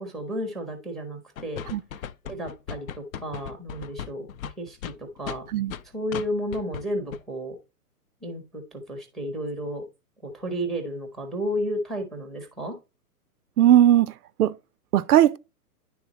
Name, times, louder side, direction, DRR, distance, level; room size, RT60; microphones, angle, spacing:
voice 1, 0.0-1.6 2.3-4.3 4.6-5.4 5.9-7.6 8.2-9.8 10.2-12.8, equal, ahead, 0.7 m, -32 dB
sound 1, 1.4-5.8 6.1-6.3 6.5-6.8 7.1-7.2, left 8 dB, 60° left, 0.6 m, -36 dB
voice 2, 13.6-14.6 14.9-15.4, right 12 dB, 70° right, 0.5 m, -18 dB
10.0 x 3.5 x 2.9 m
hypercardioid pair, 135°, 47 cm